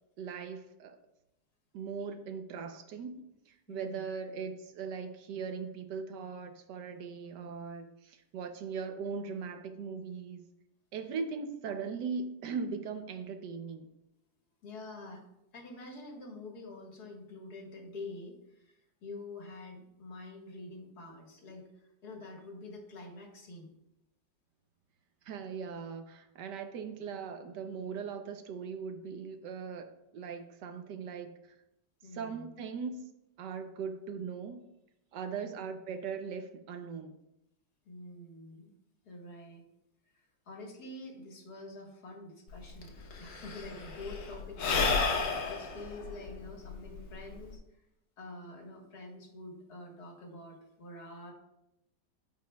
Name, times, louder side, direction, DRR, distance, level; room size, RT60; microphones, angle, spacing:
voice 1, 0.2-1.0 1.7-10.4 10.9-13.9 25.2-31.6 32.1-33.0 33.4-34.7 35.1-37.2, right 5 dB, 75° right, 7 dB, 1.3 m, -39 dB
voice 2, 3.7-4.0 7.4-7.6 14.6-15.2 15.5-23.7 32.0-32.5 35.4-35.5 37.9-38.7 39.1-39.6 40.1-42.9 43.2-44.6 44.9-47.8 48.2-51.3, left 2 dB, 65° left, 0 dB, 2.0 m, -47 dB
Sigh / Breathing, 42.5-42.6 42.8-47.5, left 4 dB, 80° left, 1.6 m, -32 dB
14.0 x 5.2 x 2.2 m, 0.86 s
omnidirectional pair, 1.9 m